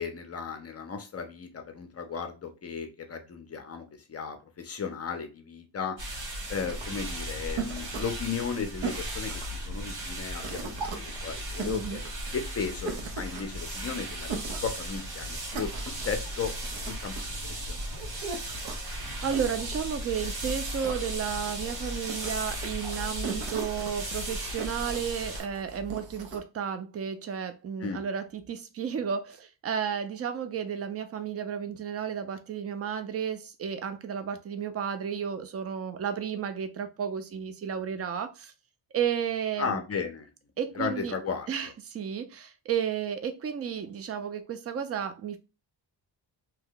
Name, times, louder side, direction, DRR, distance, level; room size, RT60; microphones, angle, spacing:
voice 1, 0.0-6.0 6.5-12.0 12.3-14.3 14.6-15.7 16.0-16.5 16.8-17.2 17.4-18.1 27.8-28.0 39.6-40.3 40.7-41.5, left 6 dB, 35° left, 0.5 m, -35 dB
sound 1, 6.0-25.4, right 1 dB, 60° right, 1.6 m, -36 dB
sound 2, 6.4-26.4, right 4 dB, 80° right, 0.8 m, -41 dB
voice 2, 11.7-12.0 19.2-38.5 38.9-39.8 40.6-41.1 41.5-45.4, right 8 dB, 35° right, 0.4 m, -33 dB
2.8 x 2.1 x 3.7 m
cardioid pair, 135°, 44 cm